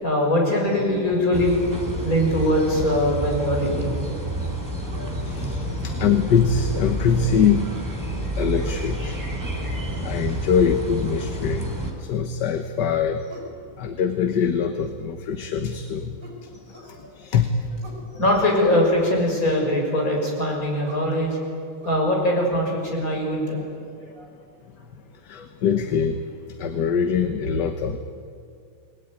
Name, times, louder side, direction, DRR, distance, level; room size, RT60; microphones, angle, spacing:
voice 1, 0.0-1.6 2.0-4.0 4.9-5.1 8.6-8.8 9.9-10.1 17.0-17.1 18.1-21.5 21.8-23.6 24.1-24.3, left 1 dB, 40° left, 0 dB, 6.5 m, -22 dB
sound 1, 1.3-11.9, equal, 10° right, 3.6 m, -29 dB
sound 2, 4.9-5.2 6.8-7.5 8.6-8.9 11.0-11.3 13.3-13.6 16.2-16.9 17.8-18.1 19.9-20.2 20.8-21.1 21.8-21.9, right 1 dB, 40° right, 5.1 m, -43 dB
voice 2, 5.2-7.7 8.4-9.2 10.0-13.2 13.8-16.2 17.1-17.7 25.2-26.2 26.6-28.0, left 7 dB, 60° left, 7 dB, 1.7 m, -23 dB
29.5 x 20.5 x 9.4 m, 2.3 s
omnidirectional pair, 2.2 m